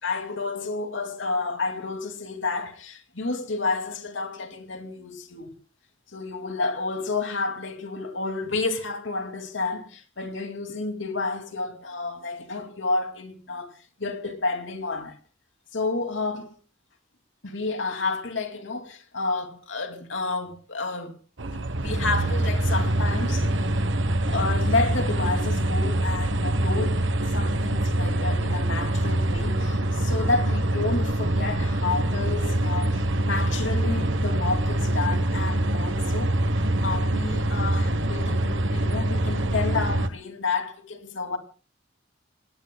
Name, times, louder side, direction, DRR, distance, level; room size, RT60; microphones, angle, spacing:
voice 1, 0.0-5.5 6.1-13.7 14.0-15.2 15.7-16.5 17.4-21.1 21.8-23.7 24.3-36.4 36.8-41.4, left 3 dB, 80° left, 2.6 m, -30 dB
sound 1, 21.4-40.1, right 1 dB, 75° right, 1.2 m, -24 dB
28.5 x 18.5 x 2.3 m
head